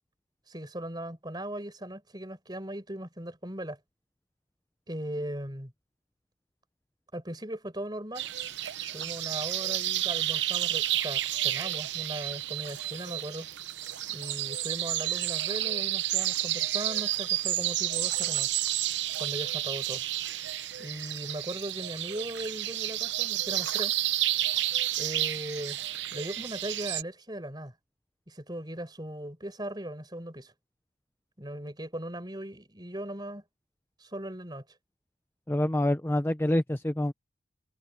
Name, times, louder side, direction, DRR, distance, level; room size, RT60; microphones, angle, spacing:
voice 1, 0.5-3.8 4.9-5.7 7.1-8.3 8.9-13.5 14.1-18.6 19.2-20.0 20.8-23.9 25.0-25.8 26.1-27.7 28.3-30.5 31.4-33.4 34.0-34.6, right 1 dB, 20° right, 5.0 m, -38 dB
sound 1, 8.2-27.0, right 13 dB, 65° right, 0.8 m, -31 dB
voice 2, 35.5-37.1, left 1 dB, 10° left, 0.6 m, -26 dB
head